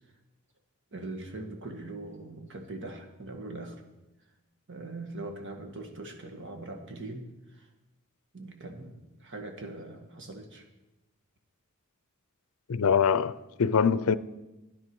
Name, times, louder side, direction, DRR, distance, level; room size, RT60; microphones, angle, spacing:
voice 1, 0.9-3.8 4.7-7.7 8.3-10.7, right 2 dB, 60° right, 1.8 m, -41 dB
voice 2, 12.7-14.2, left 6 dB, 70° left, 0.5 m, -24 dB
13.0 x 10.5 x 6.2 m
head